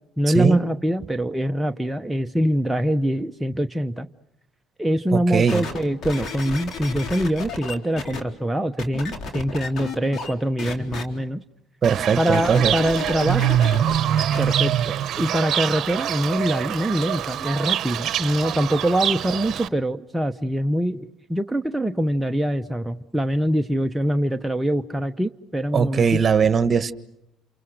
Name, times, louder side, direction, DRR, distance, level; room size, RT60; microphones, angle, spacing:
voice 1, 0.2-4.1 4.8-11.4 12.2-13.6 14.4-26.2, equal, 5° right, 5 dB, 0.9 m, -24 dB
voice 2, 5.1-5.6 11.8-12.7 25.7-26.9, right 6 dB, 40° right, 12 dB, 1.4 m, -20 dB
sound 1, 5.5-8.2 8.8-10.3 10.6-11.0 12.3-14.5 15.2-15.3, left 4 dB, 55° left, 3.8 m, -32 dB
Fowl / Bird, 11.8-19.7, right 10 dB, 60° right, 0.9 m, -24 dB
28.5 x 28.0 x 6.5 m, 0.84 s
supercardioid pair, 80°, 0 cm